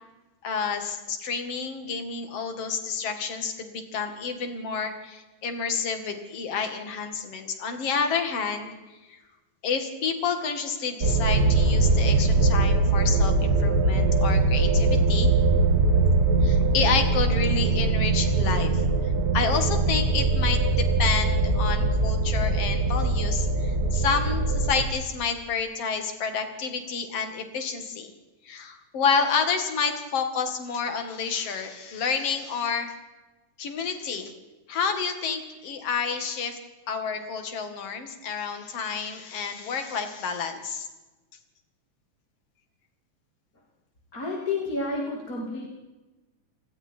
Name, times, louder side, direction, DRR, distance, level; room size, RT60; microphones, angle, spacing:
voice 1, 0.4-8.7 9.6-15.3 16.4-18.9 19.3-28.1 28.4-32.9 33.6-34.3 34.7-36.6 36.9-40.9, left 5 dB, 50° left, 7 dB, 2.9 m, -29 dB
sound 1, 11.0-24.8, right 3 dB, 30° right, 2.3 m, -22 dB
voice 2, 44.1-45.7, left 3 dB, 25° left, -2 dB, 2.8 m, -30 dB
29.0 x 19.5 x 4.6 m, 1.1 s
omnidirectional pair, 3.9 m